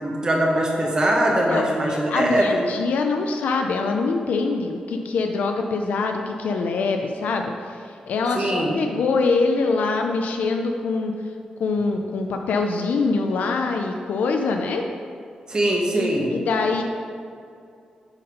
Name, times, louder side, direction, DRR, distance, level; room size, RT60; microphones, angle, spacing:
voice 1, 0.0-2.6 8.3-8.8 15.5-16.4, right 1 dB, 30° right, -1 dB, 1.4 m, -22 dB
voice 2, 1.2-11.1 11.6-14.9 15.9-16.8, left 4 dB, 85° left, 4 dB, 0.5 m, -24 dB
8.0 x 4.3 x 5.3 m, 2.4 s
wide cardioid pair, 125°, 3 cm